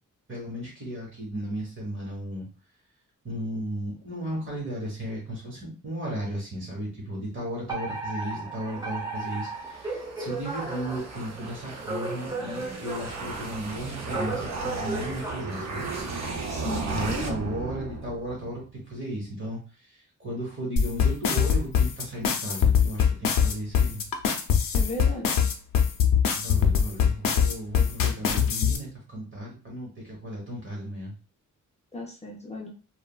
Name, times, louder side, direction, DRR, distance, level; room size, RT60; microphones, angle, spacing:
voice 1, 0.3-2.5 3.2-15.9 16.6-19.6 20.2-24.0 26.3-31.1, right 1 dB, 40° right, -3 dB, 1.1 m, -35 dB
Alarm, 7.7-16.3, right 3 dB, 10° right, 0.8 m, -36 dB
sound 1, 9.2-18.6, right 3 dB, 55° right, 0.6 m, -36 dB
voice 2, 16.5-17.5 24.7-25.4 31.9-32.7, left 1 dB, 20° left, -2 dB, 0.5 m, -35 dB
sound 2, 20.8-28.8, left 7 dB, 90° left, 0.5 m, -22 dB
3.3 x 2.1 x 2.3 m, 0.34 s
wide cardioid pair, 135°, 32 cm